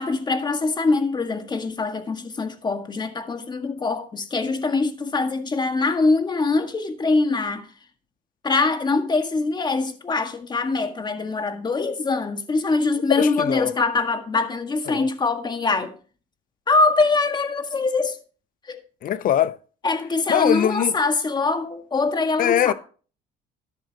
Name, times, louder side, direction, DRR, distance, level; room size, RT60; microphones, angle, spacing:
voice 1, 0.0-7.7 8.4-15.9 16.7-18.2 18.6-18.8 19.8-22.7, left 3 dB, 25° left, 1.7 m, -23 dB
voice 2, 13.1-13.7 14.9-15.1 19.0-19.6 20.3-20.9 22.4-22.7, left 11 dB, 55° left, 0.7 m, -21 dB
13.0 x 11.0 x 2.9 m
cardioid pair, 110°, 17 cm